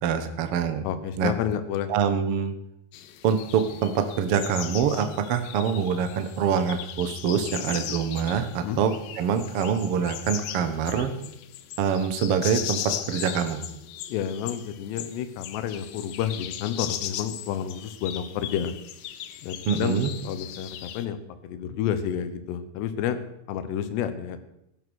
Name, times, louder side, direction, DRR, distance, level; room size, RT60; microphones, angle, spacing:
voice 1, 0.0-0.8 1.2-1.3 1.9-2.5 3.2-11.1 11.8-13.6 19.7-20.1, right 7 dB, 75° right, 9 dB, 1.3 m, -25 dB
voice 2, 0.8-1.9 8.6-8.8 14.1-18.7 19.4-21.2 21.4-23.2 23.5-24.4, left 9 dB, 90° left, 10 dB, 3.2 m, -30 dB
sound 1, 2.9-21.1, left 11 dB, 75° left, 2.1 m, -38 dB
15.5 x 11.5 x 6.4 m, 0.79 s
omnidirectional pair, 4.7 m